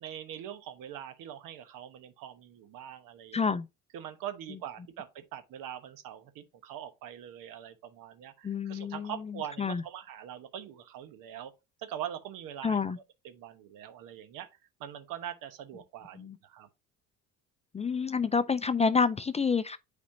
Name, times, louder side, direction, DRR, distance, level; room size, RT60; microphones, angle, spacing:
voice 1, 0.0-3.6 3.9-11.5 11.8-12.8 13.2-14.5 14.8-16.7, right 10 dB, 70° right, 1.1 m, -43 dB
voice 2, 3.3-3.7 8.4-9.8 12.6-13.0 16.1-16.4 17.7-19.8, left 5 dB, 20° left, 0.4 m, -28 dB
8.5 x 4.2 x 2.7 m
supercardioid pair, 75°, 34 cm